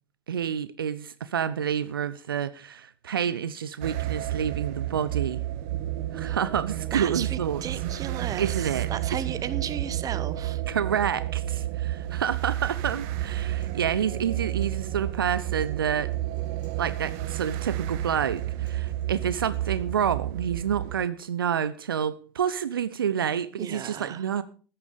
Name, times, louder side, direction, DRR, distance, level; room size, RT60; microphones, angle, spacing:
voice 1, 0.3-5.4 6.1-7.6 8.4-8.9 10.7-16.1 16.8-24.4, right 8 dB, 75° right, 15 dB, 0.6 m, -28 dB
sound 1, 3.8-21.0, right 13 dB, 55° right, 1.3 m, -31 dB
voice 2, 6.9-10.6 23.6-24.3, right 9 dB, 30° right, 15 dB, 1.2 m, -35 dB
Acoustic guitar, 12.2-20.1, left 5 dB, 60° left, 6.0 m, -56 dB
14.5 x 9.8 x 5.1 m, 0.39 s
figure-of-eight pair, 80°, 12 cm